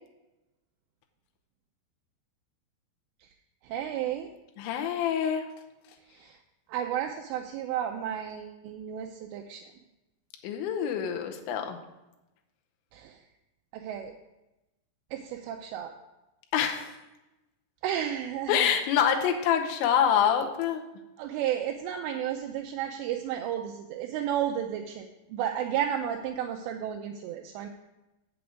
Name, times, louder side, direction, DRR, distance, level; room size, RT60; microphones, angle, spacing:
voice 1, 3.6-4.3 6.1-6.4 6.7-9.7 12.9-13.2 13.7-14.1 15.1-15.9 17.8-18.7 21.2-27.7, right 10 dB, 85° right, 4 dB, 2.7 m, -32 dB
voice 2, 4.6-5.4 10.4-11.8 16.5-16.9 18.5-20.8, left 8 dB, 85° left, 4 dB, 3.2 m, -26 dB
8.1 x 7.8 x 4.9 m, 0.99 s
omnidirectional pair, 5.1 m